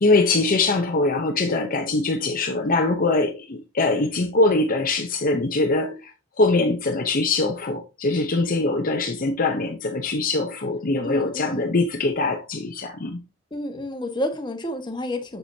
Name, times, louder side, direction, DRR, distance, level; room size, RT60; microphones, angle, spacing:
voice 1, 0.0-6.1 6.4-13.2, left 2 dB, 45° left, 0.8 m, -22 dB
voice 2, 11.0-11.7 13.5-15.4, left 1 dB, 25° left, 1.4 m, -30 dB
7.3 x 6.8 x 2.7 m
head